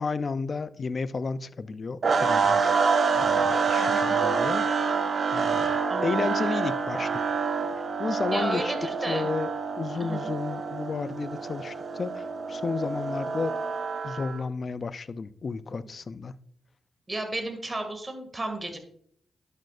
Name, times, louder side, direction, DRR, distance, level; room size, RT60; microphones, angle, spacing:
voice 1, 0.0-2.9 3.1-4.7 5.3-7.2 8.0-8.7 9.1-9.5 9.8-13.6 14.0-16.3, left 4 dB, 55° left, 0.4 m, -32 dB
sound 1, 2.0-14.4, right 5 dB, 60° right, 0.8 m, -27 dB
voice 2, 3.8-4.2 5.9-6.2 8.3-9.3 10.0-10.3 17.1-18.8, right 2 dB, 30° right, 2.1 m, -33 dB
11.5 x 6.4 x 2.5 m
supercardioid pair, 55°, 0 cm